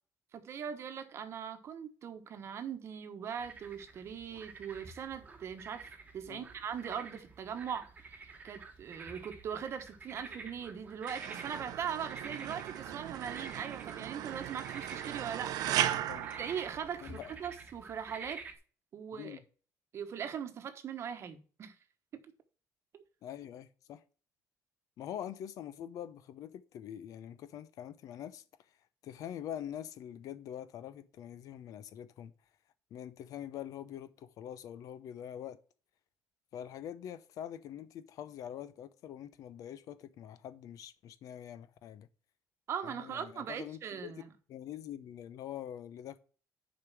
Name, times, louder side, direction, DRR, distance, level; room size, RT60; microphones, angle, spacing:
voice 1, 0.3-5.9 6.1-15.6 16.4-18.4 18.9-19.4 19.9-21.7 22.1-22.2 22.9-23.0 42.7-44.3, right 8 dB, 45° right, 1.1 m, -40 dB
sound 1, 3.4-18.6, right 4 dB, 25° right, 1.2 m, -49 dB
sound 2, 11.1-17.4, right 12 dB, 75° right, 0.6 m, -37 dB
voice 2, 15.7-16.3 17.0-17.3 19.1-19.4 23.2-24.0 25.0-28.4 29.0-32.3 32.9-35.6 36.5-42.1 42.8-44.2 44.5-46.2, left 10 dB, 60° left, 0.7 m, -44 dB
6.7 x 5.2 x 5.9 m
cardioid pair, 160°, 7 cm